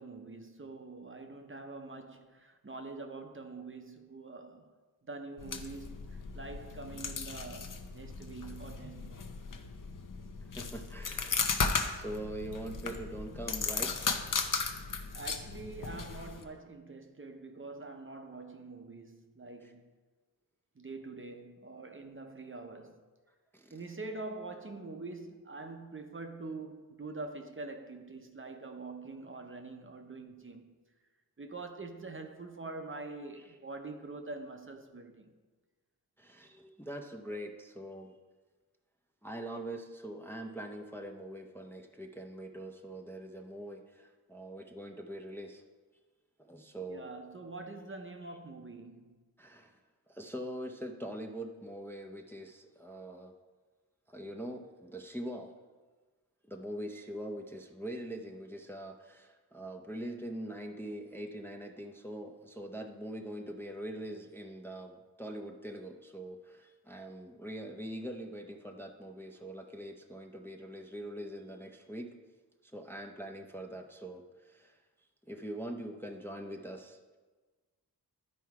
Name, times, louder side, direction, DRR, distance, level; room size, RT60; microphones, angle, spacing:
voice 1, 0.0-4.7 5.0-9.3 15.1-19.9 20.8-23.0 23.7-30.7 31.4-35.3 46.9-49.2, right 3 dB, 35° right, 0.7 m, -45 dB
sound 1, 5.4-16.4, left 5 dB, 55° left, 0.7 m, -36 dB
voice 2, 10.4-11.6 11.9-14.4 19.6-19.7 23.5-23.8 36.2-38.2 39.2-45.6 46.4-47.1 49.4-49.8 50.1-53.3 54.1-55.5 56.5-72.1 72.6-74.8 75.2-77.0, right 1 dB, 5° left, 0.5 m, -43 dB
11.0 x 4.6 x 4.7 m
wide cardioid pair, 90°, 38 cm